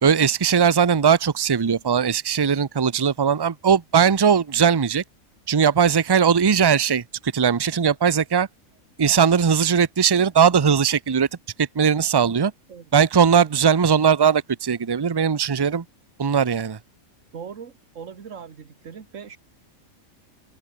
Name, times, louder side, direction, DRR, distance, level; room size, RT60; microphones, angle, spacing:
voice 1, 0.0-5.0 5.5-7.0 7.3-8.5 9.0-11.3 11.6-12.5 12.9-15.8 16.2-16.8, right 7 dB, 35° right, 0.3 m, -19 dB
voice 2, 17.3-19.4, right 7 dB, 60° right, 1.8 m, -40 dB
open air
omnidirectional pair, 1.5 m